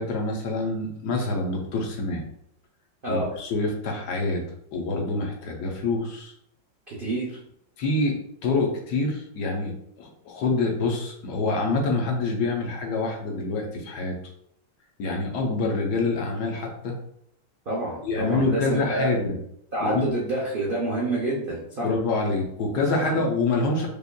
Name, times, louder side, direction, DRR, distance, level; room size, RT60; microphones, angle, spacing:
voice 1, 0.0-2.2 3.1-4.4 4.7-6.3 7.8-14.2 15.0-17.0 18.0-19.4 19.8-20.1 21.8-23.9, left 3 dB, 65° left, 0 dB, 1.2 m, -26 dB
voice 2, 6.9-7.3 17.7-19.1 19.7-21.9 23.0-23.2, right 2 dB, 85° right, -4 dB, 0.4 m, -27 dB
5.1 x 2.4 x 2.2 m, 0.73 s
omnidirectional pair, 2.0 m